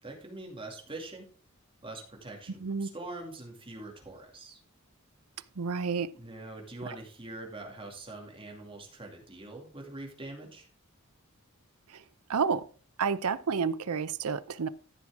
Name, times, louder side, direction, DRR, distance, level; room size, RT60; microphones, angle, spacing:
voice 1, 0.0-1.3 1.8-4.6 6.1-10.7, right 2 dB, 25° right, 2.4 m, -43 dB
voice 2, 5.6-6.1 11.9-12.0 12.3-12.6 13.0-14.7, right 5 dB, 80° right, 0.6 m, -30 dB
14.0 x 6.2 x 3.6 m
head